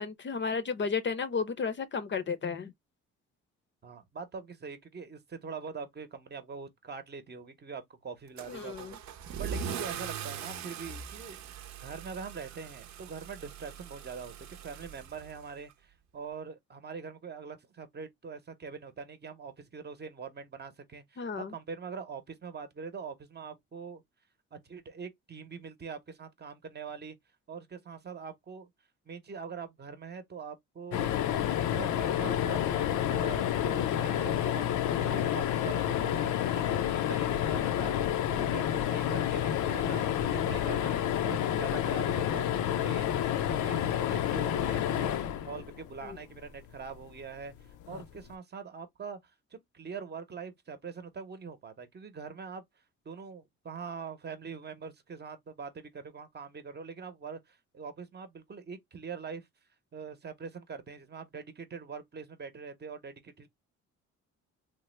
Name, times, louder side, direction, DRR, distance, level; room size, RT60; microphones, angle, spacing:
voice 1, 0.0-2.7 8.5-9.0 21.2-21.5 46.0-46.2, left 5 dB, 40° left, 0.6 m, -33 dB
voice 2, 3.8-11.4 11.8-24.0 24.5-27.2 27.5-28.7 29.1-31.1 31.7-38.0 38.3-42.4 42.8-43.1 43.5-47.5 47.9-49.2 49.7-52.6 53.0-59.5 59.9-63.5, right 5 dB, 35° right, 0.8 m, -43 dB
Car / Engine starting / Accelerating revving vroom, 8.4-15.7, right 8 dB, 65° right, 0.7 m, -41 dB
sound 1, 30.9-46.2 47.9-48.0 48.3-48.4, left 10 dB, 80° left, 0.6 m, -29 dB
3.3 x 2.1 x 3.1 m
cardioid pair, 90°, 30 cm